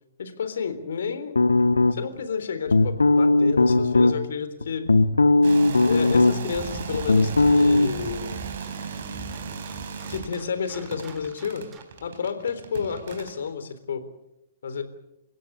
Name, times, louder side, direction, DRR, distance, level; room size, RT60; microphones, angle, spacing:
voice 1, 0.2-1.3 1.9-4.8 5.8-8.4 10.1-11.7 12.0-14.0 14.6-14.8, left 6 dB, 65° left, 10 dB, 3.8 m, -30 dB
sound 1, 1.3-2.2 2.7-4.1 4.6-6.5 6.8-7.9, left 2 dB, 85° left, 1.3 m, -18 dB
sound 2, 5.4-13.5, right 6 dB, 60° right, 4.2 m, -37 dB
sound 3, 6.5-12.1, right 4 dB, 20° right, 3.3 m, -43 dB
30.0 x 16.0 x 8.3 m, 0.87 s
figure-of-eight pair, 115°, 0 cm